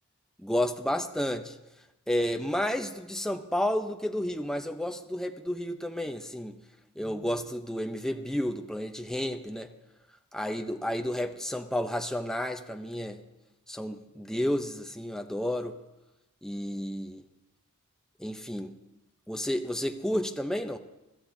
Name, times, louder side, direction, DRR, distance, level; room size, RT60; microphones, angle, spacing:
voice 1, 0.4-1.6 2.1-6.6 7.0-9.7 10.3-13.2 13.7-15.8 16.4-17.2 18.2-18.7 19.3-20.8, left 1 dB, 5° left, 5 dB, 0.6 m, -31 dB
23.5 x 13.5 x 2.7 m, 1.0 s
head